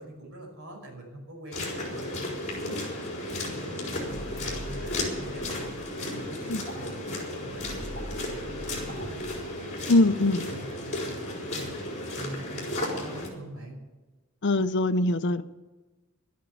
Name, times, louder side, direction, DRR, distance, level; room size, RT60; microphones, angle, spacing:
voice 1, 0.0-13.8, right 1 dB, 60° right, 0 dB, 5.5 m, -44 dB
sound 1, 1.5-13.3, left 1 dB, 35° left, 4.5 m, -34 dB
sound 2, 4.0-5.8 7.5-9.5, equal, 30° right, 6.5 m, -43 dB
voice 2, 9.9-10.4 14.4-15.4, left 2 dB, 55° left, 12 dB, 0.7 m, -22 dB
12.5 x 10.5 x 8.6 m, 1.2 s
head